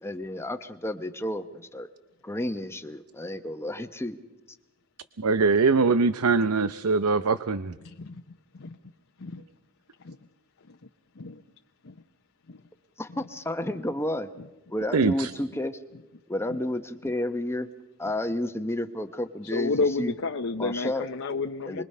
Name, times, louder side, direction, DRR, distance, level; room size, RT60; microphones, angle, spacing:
voice 1, 0.0-1.9 2.2-4.2 13.0-14.3 14.7-15.8 16.3-17.7 18.0-19.7 20.0-20.1 20.6-21.1 21.7-21.8, left 1 dB, 10° left, 8 dB, 1.0 m, -31 dB
voice 2, 5.2-7.7 14.9-15.3, right 4 dB, 90° right, 13 dB, 0.7 m, -22 dB
voice 3, 7.8-8.2 8.5-8.8 9.2-9.4 10.0-10.2 10.7-10.8 11.2-11.4 11.8-12.0 12.5-12.6 13.1-13.2 14.4-14.5 16.5-16.6 19.5-21.8, left 3 dB, 65° left, 4 dB, 0.9 m, -31 dB
28.5 x 21.5 x 5.6 m, 1.0 s
head